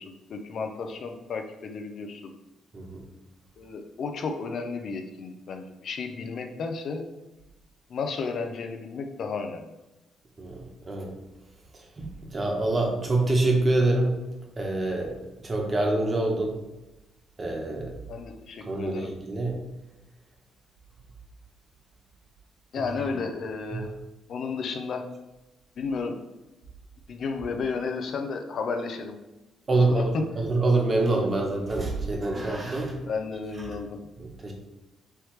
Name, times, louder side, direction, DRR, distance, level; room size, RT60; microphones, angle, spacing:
voice 1, 0.0-2.3 3.6-7.0 7.9-9.7 18.1-19.1 22.7-23.9 24.3-25.1 25.8-26.2 27.1-29.2 29.7-30.3 31.2-31.3 32.3-32.4 33.0-34.0, left 4 dB, 60° left, 4 dB, 0.5 m, -33 dB
voice 2, 12.3-14.1 14.6-15.1 15.4-16.5 17.4-17.9 18.7-19.6 29.7-32.9 34.4-34.5, right 2 dB, 35° right, 0 dB, 1.1 m, -25 dB
4.5 x 3.2 x 3.2 m, 1.0 s
cardioid pair, 90°, 0 cm